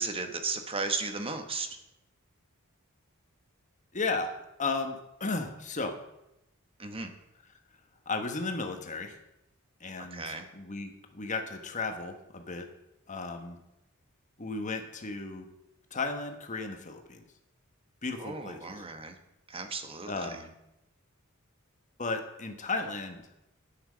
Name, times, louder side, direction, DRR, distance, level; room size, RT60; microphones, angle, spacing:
voice 1, 0.0-1.7 6.8-7.1 10.0-10.5 18.2-19.2 19.5-20.4, right 4 dB, 25° right, 7 dB, 1.1 m, -35 dB
voice 2, 3.9-6.0 8.1-9.2 9.8-12.7 13.1-13.6 14.4-15.5 15.9-17.2 18.0-18.8 20.1-20.5 22.0-23.2, left 3 dB, 35° left, 5 dB, 1.3 m, -34 dB
9.1 x 8.9 x 6.3 m, 0.89 s
head